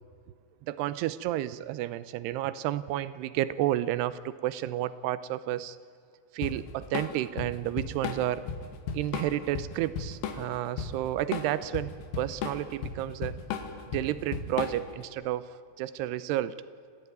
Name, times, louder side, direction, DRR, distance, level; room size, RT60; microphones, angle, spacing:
voice 1, 0.7-5.8 6.3-8.4 8.9-13.4 13.9-16.6, right 13 dB, 80° right, 16 dB, 2.4 m, -31 dB
Drum kit / Drum, 6.4-15.0, left 6 dB, 80° left, 4.3 m, -35 dB
28.0 x 15.0 x 9.5 m, 2.3 s
omnidirectional pair, 5.5 m